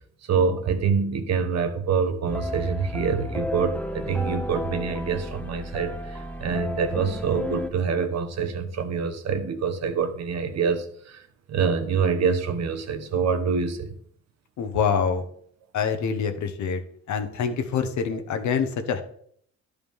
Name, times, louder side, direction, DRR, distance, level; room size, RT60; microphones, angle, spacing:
voice 1, 0.3-13.9 18.1-18.2, right 5 dB, 60° right, 1.1 m, -26 dB
sound 1, 2.3-7.7, left 1 dB, 5° left, 0.5 m, -32 dB
voice 2, 14.6-15.3 15.7-16.8 17.1-19.0, left 6 dB, 70° left, 1.1 m, -25 dB
11.0 x 4.9 x 3.5 m
cardioid pair, 90°, 30 cm